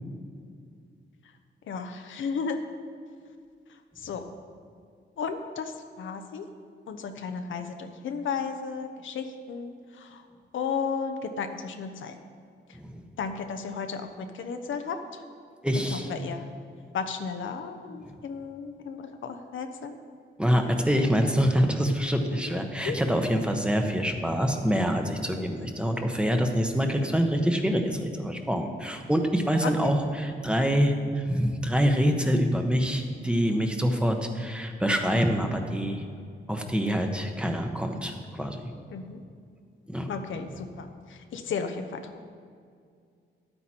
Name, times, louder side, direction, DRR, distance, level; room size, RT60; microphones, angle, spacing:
voice 1, 1.7-2.6 4.0-4.2 5.2-6.5 6.9-10.2 10.5-12.2 13.2-15.0 15.9-16.5 16.9-20.0 22.3-23.0 26.9-27.0 29.6-29.9 38.9-39.2 40.1-42.0, left 5 dB, 80° left, 6 dB, 0.8 m, -34 dB
voice 2, 15.6-16.1 20.4-36.0 36.5-38.7 39.9-40.1, equal, 5° right, 4 dB, 1.1 m, -25 dB
11.0 x 8.9 x 4.4 m, 2.2 s
cardioid pair, 85°, 20 cm